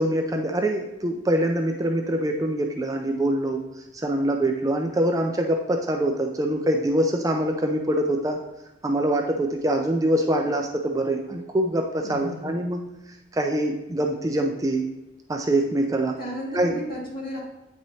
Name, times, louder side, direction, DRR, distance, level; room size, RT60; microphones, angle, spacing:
voice 1, 0.0-8.4 8.8-14.8 15.3-16.1 16.5-16.7, right 1 dB, 20° right, 3 dB, 0.4 m, -24 dB
voice 2, 12.0-12.7 16.2-17.4, equal, 50° left, -5 dB, 2.2 m, -34 dB
8.7 x 4.7 x 2.7 m, 1.0 s
head